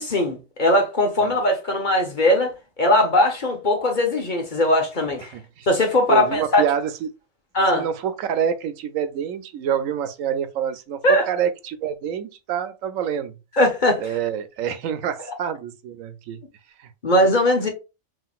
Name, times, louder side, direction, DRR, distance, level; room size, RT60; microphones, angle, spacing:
voice 1, 0.0-5.3 5.7-6.6 7.5-7.8 11.0-11.3 13.5-14.1 17.0-17.7, left 1 dB, 40° left, 0.9 m, -20 dB
voice 2, 5.3-5.7 6.1-7.1 7.7-11.0 11.3-13.3 14.0-16.4 16.8-16.9, right 8 dB, 80° right, 1.0 m, -27 dB
5.6 x 2.8 x 2.4 m
omnidirectional pair, 1.4 m